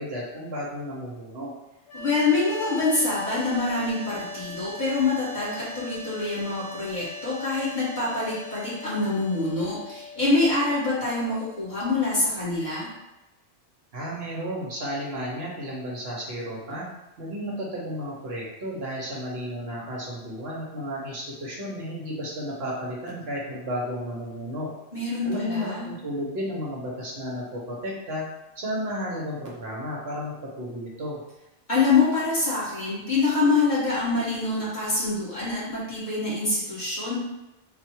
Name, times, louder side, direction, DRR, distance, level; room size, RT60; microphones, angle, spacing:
voice 1, 0.0-1.5 13.9-16.9 17.2-24.7 25.2-28.2 28.6-31.2, equal, 65° right, -3 dB, 1.2 m, -33 dB
sound 1, 1.9-13.0, left 2 dB, 65° left, 1.3 m, -40 dB
voice 2, 1.9-12.9 24.9-25.9 31.7-37.2, left 3 dB, 40° left, -9 dB, 1.8 m, -25 dB
4.1 x 2.5 x 4.5 m, 1.0 s
omnidirectional pair, 1.2 m